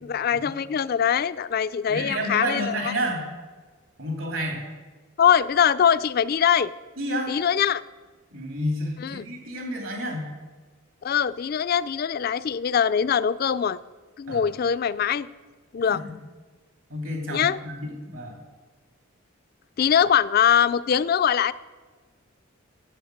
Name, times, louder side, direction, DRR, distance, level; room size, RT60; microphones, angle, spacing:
voice 1, 0.0-2.9 5.2-6.7 7.3-7.8 9.0-9.2 11.0-13.8 14.2-15.3 15.7-16.0 17.3-17.6 19.8-21.5, left 8 dB, 45° left, 16 dB, 0.3 m, -22 dB
voice 2, 1.9-3.3 4.0-4.6 7.0-7.3 8.3-10.3 14.3-14.5 15.9-16.1 16.9-18.4, equal, 75° right, 1 dB, 3.1 m, -30 dB
9.9 x 7.6 x 7.9 m, 1.4 s
head